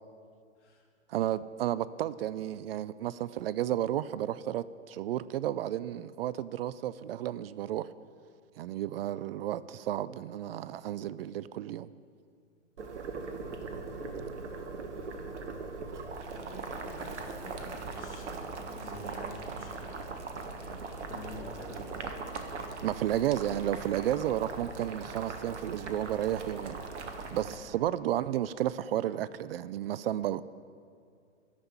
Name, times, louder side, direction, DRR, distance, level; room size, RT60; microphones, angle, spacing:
voice 1, 1.1-7.9 8.6-11.9 22.8-26.8 27.3-30.4, right 12 dB, 55° right, 17 dB, 0.5 m, -32 dB
Boiling, 12.8-27.5, right 4 dB, 70° right, 1.5 m, -40 dB
voice 2, 16.3-20.1 20.6-21.9, left 1 dB, 65° left, -1 dB, 3.2 m, -48 dB
14.0 x 5.7 x 9.7 m, 2.4 s
figure-of-eight pair, 105°, 37 cm